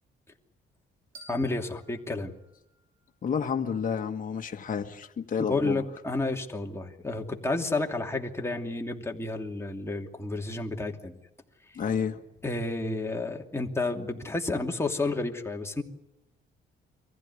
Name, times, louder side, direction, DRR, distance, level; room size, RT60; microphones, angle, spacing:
sound 1, 1.1-3.9, right 1 dB, 75° right, 5.0 m, -55 dB
voice 1, 1.3-2.3 5.4-11.2 12.4-15.8, left 2 dB, 15° left, 2 dB, 2.8 m, -31 dB
voice 2, 3.2-5.8 11.7-12.2, left 6 dB, 45° left, 3 dB, 1.7 m, -30 dB
24.0 x 15.0 x 9.8 m, 0.92 s
cardioid pair, 90°, 20 cm